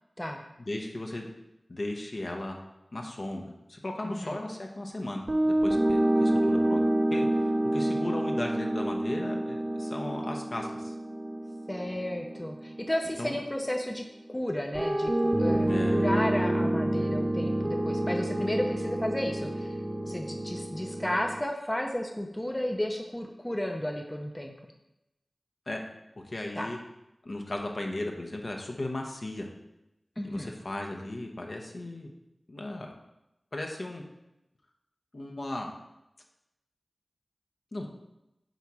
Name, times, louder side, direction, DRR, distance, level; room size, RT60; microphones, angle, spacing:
voice 1, 0.6-1.3 1.7-2.6 2.9-6.8 7.1-10.9 13.2-13.4 15.6-16.1 25.7-25.8 26.2-26.8 27.2-29.5 30.2-32.1 32.5-32.9 33.5-34.0 35.1-35.7 37.7-37.9, left 1 dB, 60° left, 1 dB, 0.9 m, -36 dB
voice 2, 4.0-4.4 11.7-14.0 14.3-19.8 20.0-24.5 26.5-26.7 30.2-30.5, left 1 dB, 20° left, 3 dB, 0.6 m, -33 dB
sound 1, 5.3-13.4 14.7-21.4, right 1 dB, 45° right, 0.6 m, -28 dB
7.8 x 2.9 x 4.8 m, 0.90 s
wide cardioid pair, 50°, 0 cm